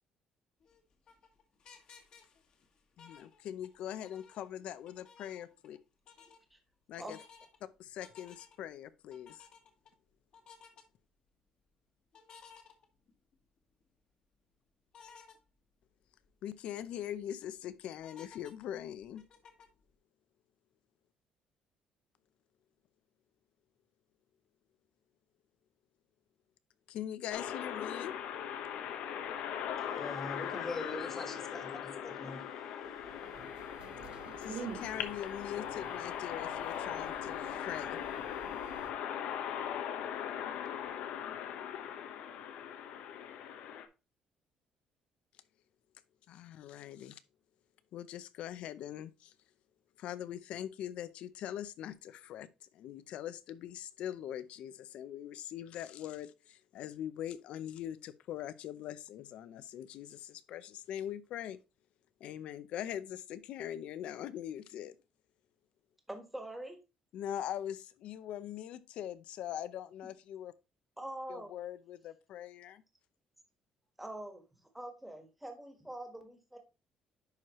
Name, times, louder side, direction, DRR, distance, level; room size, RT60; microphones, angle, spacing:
sound 1, 0.6-3.8 4.0-5.8 6.1-6.4 6.9-7.6 8.0-8.7 9.1-9.9 10.3-10.8 12.1-13.3 13.8-13.9 14.9-15.4 15.9-16.0 16.2-16.3 16.8-17.2 18.0-19.8, left 6 dB, 45° left, 1.5 m, -57 dB
voice 1, 3.0-5.8 6.9-7.2 7.8-9.5 16.4-19.2 26.9-28.1 34.4-38.0 46.3-47.2 47.9-49.3 50.0-61.6 62.2-65.0 67.1-70.5 71.3-72.8, left 11 dB, 65° left, 0.6 m, -42 dB
sound 2, 27.3-43.8, left 9 dB, 85° left, 1.0 m, -40 dB
voice 2, 29.8-33.4, left 3 dB, 20° left, 1.4 m, -44 dB
sound 3, 32.8-38.9, right 7 dB, 60° right, 1.2 m, -49 dB
voice 3, 66.1-66.8 71.0-71.5 74.0-74.4 74.7-76.6, right 1 dB, 5° right, 1.4 m, -44 dB
10.5 x 4.6 x 3.0 m
cardioid pair, 165°, 2 cm